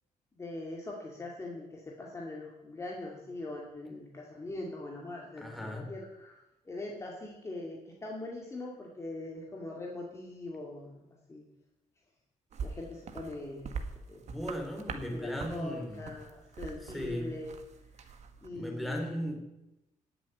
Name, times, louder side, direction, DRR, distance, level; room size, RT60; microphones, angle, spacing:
voice 1, 0.4-6.4 6.7-11.0 11.3-11.4 12.6-13.6 14.1-14.2 15.1-17.6 18.0-18.1 18.4-19.3, left 2 dB, 20° left, -2 dB, 2.3 m, -42 dB
voice 2, 5.4-5.9 14.2-16.0 16.8-17.3 18.5-19.4, equal, ahead, 0 dB, 3.3 m, -37 dB
sound 1, 12.5-18.5, right 5 dB, 55° right, 1.5 m, -43 dB
18.0 x 7.2 x 9.5 m, 0.93 s
cardioid pair, 160°, 14 cm